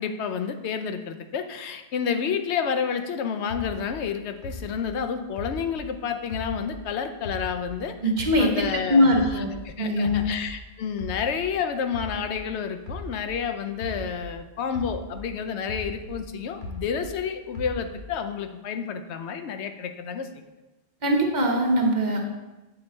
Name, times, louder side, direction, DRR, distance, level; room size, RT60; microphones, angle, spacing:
voice 1, 0.0-7.9 8.4-20.3, left 7 dB, 85° left, 7 dB, 0.9 m, -30 dB
sound 1, 3.5-6.9 7.2-9.7 10.0-14.4 14.7-17.2 17.5-18.3, left 1 dB, 50° left, 1.2 m, -38 dB
voice 2, 8.0-9.5 9.8-10.3 21.0-22.2, equal, 45° right, 1 dB, 1.0 m, -22 dB
7.9 x 3.8 x 4.3 m, 1.1 s
omnidirectional pair, 1.1 m